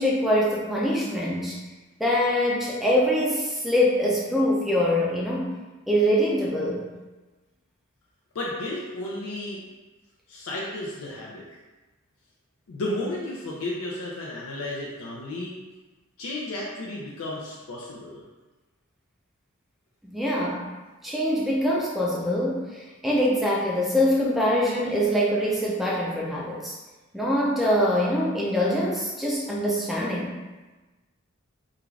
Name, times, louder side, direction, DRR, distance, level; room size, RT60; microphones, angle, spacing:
voice 1, 0.0-1.6 2.0-5.5 5.9-6.9 20.0-20.7 21.0-26.8 27.1-30.3, equal, ahead, -4 dB, 0.3 m, -24 dB
voice 2, 8.3-9.6 10.3-11.6 12.7-15.6 16.2-18.2, left 1 dB, 90° left, -4 dB, 0.4 m, -33 dB
2.4 x 2.3 x 3.1 m, 1.2 s
head